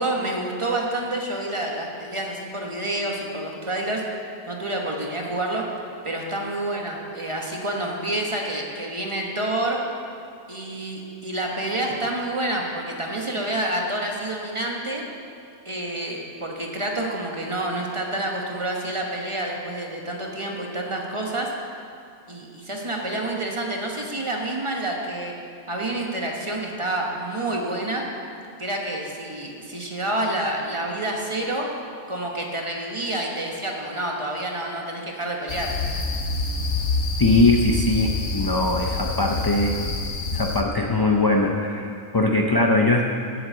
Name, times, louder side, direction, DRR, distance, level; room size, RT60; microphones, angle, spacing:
voice 1, 0.0-4.0 4.5-5.7 6.0-9.8 10.5-15.0 15.6-21.5 22.3-25.3 25.7-28.0 28.6-31.7 32.1-35.7, right 1 dB, 25° right, 0 dB, 1.1 m, -28 dB
sound 1, 35.5-40.6, left 3 dB, 70° left, 1.2 m, -27 dB
voice 2, 37.2-39.8 40.3-43.0, left 2 dB, 35° left, 1 dB, 0.3 m, -21 dB
7.8 x 7.6 x 7.8 m, 2.4 s
omnidirectional pair, 1.3 m